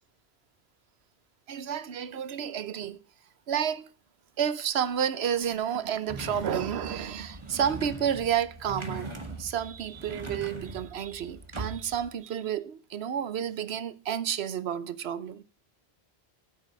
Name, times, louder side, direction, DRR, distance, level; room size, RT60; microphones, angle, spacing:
voice 1, 1.5-3.0 3.5-3.9 4.4-9.1 9.4-15.4, right 9 dB, 80° right, 1.0 m, -30 dB
sound 1, 6.1-12.1, right 2 dB, 30° right, 1.5 m, -40 dB
9.5 x 7.7 x 8.7 m
omnidirectional pair, 1.1 m